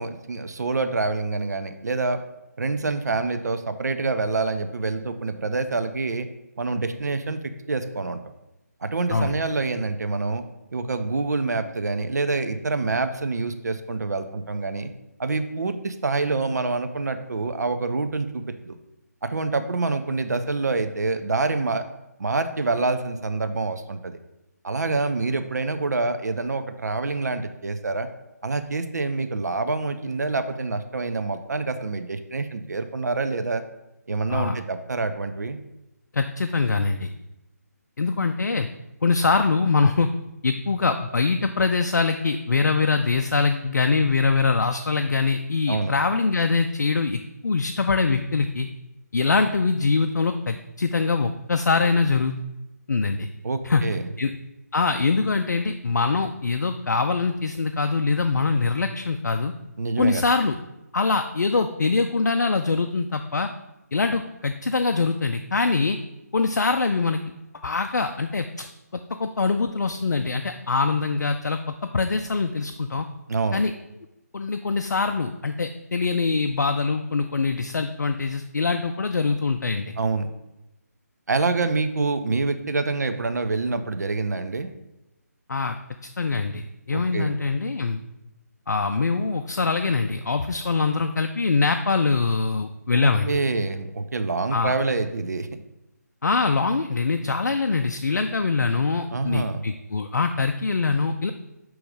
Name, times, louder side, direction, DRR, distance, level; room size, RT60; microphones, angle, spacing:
voice 1, 0.0-2.2 2.6-6.3 6.6-8.2 8.8-10.4 10.7-14.9 15.2-18.8 19.3-21.8 22.2-24.2 24.6-28.1 28.4-33.6 34.1-35.6 45.7-45.9 53.4-54.1 59.8-60.3 73.3-73.6 80.0-80.3 81.3-84.7 86.9-87.4 92.9-95.6 99.1-99.6, right 3 dB, 75° right, 9 dB, 0.5 m, -26 dB
voice 2, 36.1-37.1 38.0-38.7 39.0-40.1 40.4-48.7 49.1-52.4 52.9-53.3 53.6-53.8 54.2-54.3 54.7-59.5 60.0-60.6 60.9-63.5 63.9-66.0 66.3-67.2 67.6-68.7 68.9-73.1 73.5-73.7 74.3-79.9 85.5-85.8 86.2-88.0 88.7-93.4 94.5-94.7 96.2-101.3, left 4 dB, 80° left, 6 dB, 0.4 m, -23 dB
6.1 x 3.1 x 4.9 m, 0.95 s
figure-of-eight pair, 155°, 9 cm